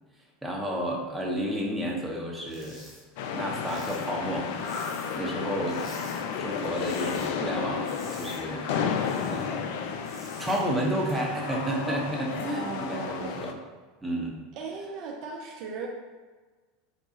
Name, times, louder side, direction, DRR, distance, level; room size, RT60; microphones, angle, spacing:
voice 1, 0.4-2.8 3.3-4.5 5.2-5.8 6.4-9.0 9.3-9.7 10.4-13.6 14.0-14.4, right 1 dB, 5° right, -3 dB, 0.9 m, -31 dB
sound 1, 2.4-3.0 3.3-5.3 5.6-6.2 6.6-7.3 7.6-9.5 9.9-10.6, left 1 dB, 25° left, 1.4 m, -49 dB
sound 2, 3.2-13.5, left 6 dB, 65° left, 0.3 m, -32 dB
voice 2, 5.4-5.8 12.5-13.4 14.6-15.9, right 5 dB, 55° right, 0 dB, 0.5 m, -38 dB
4.7 x 2.3 x 2.8 m, 1.4 s
hypercardioid pair, 85°, 0 cm